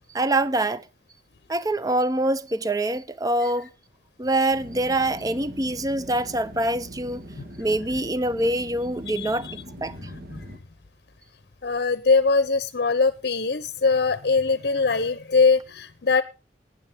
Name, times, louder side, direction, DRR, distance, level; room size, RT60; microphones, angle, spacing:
voice 1, 0.1-0.9 1.5-3.7 4.2-7.2 7.6-9.5 9.8-10.0, right 1 dB, 20° right, 0.6 m, -24 dB
sound 1, 4.5-10.6, equal, 55° right, 2.0 m, -42 dB
voice 2, 9.2-9.5 10.0-10.6 11.6-16.2, left 4 dB, 60° left, 0.7 m, -22 dB
19.0 x 9.6 x 3.5 m
head